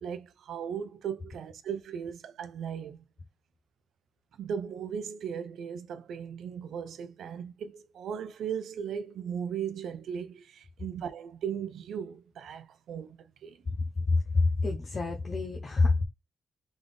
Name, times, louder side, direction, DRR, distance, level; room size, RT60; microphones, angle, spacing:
voice 1, 0.0-3.0 4.4-13.2 13.4-13.6, right 8 dB, 85° right, 0.7 m, -37 dB
voice 2, 14.0-16.0, left 3 dB, 35° left, 0.8 m, -26 dB
3.9 x 3.6 x 3.4 m
wide cardioid pair, 130°, 0 cm